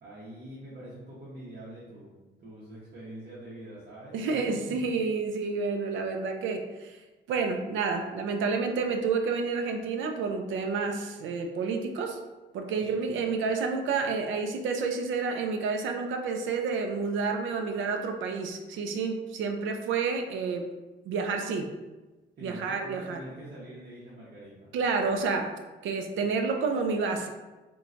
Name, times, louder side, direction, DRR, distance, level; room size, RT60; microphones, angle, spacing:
voice 1, 0.0-4.8 12.7-13.1 22.4-24.7, right 1 dB, 55° right, -8 dB, 0.8 m, -45 dB
voice 2, 4.1-7.0 7.3-12.2 12.5-20.7 21.1-21.7 22.4-23.2 24.7-25.5 25.8-27.3, right 4 dB, 75° right, 4 dB, 0.4 m, -29 dB
3.0 x 2.2 x 2.5 m, 1.1 s
cardioid pair, 90°, 20 cm